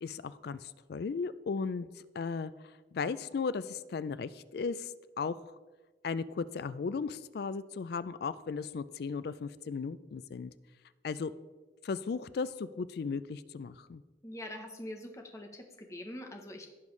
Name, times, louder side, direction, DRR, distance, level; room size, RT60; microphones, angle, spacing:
voice 1, 0.0-2.5 2.9-5.4 6.0-10.5 11.0-11.3 11.8-14.0, left 5 dB, 55° left, 15 dB, 0.3 m, -36 dB
voice 2, 14.2-16.7, left 1 dB, 15° left, 3 dB, 0.8 m, -44 dB
15.5 x 5.4 x 3.2 m, 1.2 s
head